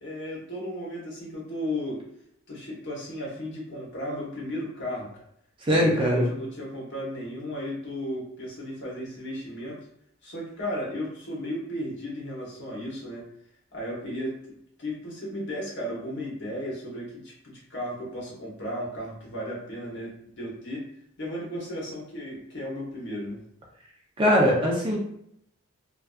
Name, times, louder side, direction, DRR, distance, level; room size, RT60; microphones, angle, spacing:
voice 1, 0.0-2.0 2.5-5.2 5.7-9.8 10.2-13.3 13.7-20.9 21.2-23.4, equal, 55° left, -4 dB, 0.9 m, -35 dB
voice 2, 5.6-6.3 24.2-25.0, equal, 25° right, -3 dB, 0.5 m, -21 dB
2.5 x 2.3 x 2.2 m, 0.73 s
head